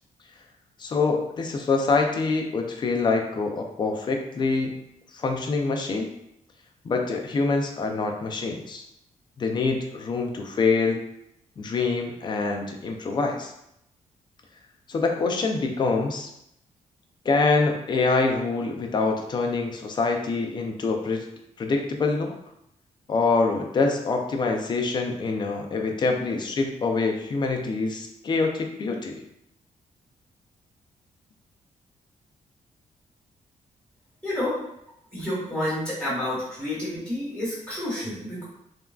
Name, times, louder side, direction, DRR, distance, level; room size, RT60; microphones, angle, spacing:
voice 1, 0.8-4.7 5.1-6.1 6.8-8.8 9.4-11.0 11.6-13.5 14.9-16.3 17.3-21.3 21.6-22.4 23.1-29.2, left 3 dB, 35° left, 2 dB, 0.4 m, -25 dB
voice 2, 34.2-34.6 35.1-38.4, left 1 dB, 5° left, -9 dB, 1.4 m, -29 dB
3.4 x 2.2 x 2.3 m, 0.79 s
wide cardioid pair, 160°, 13 cm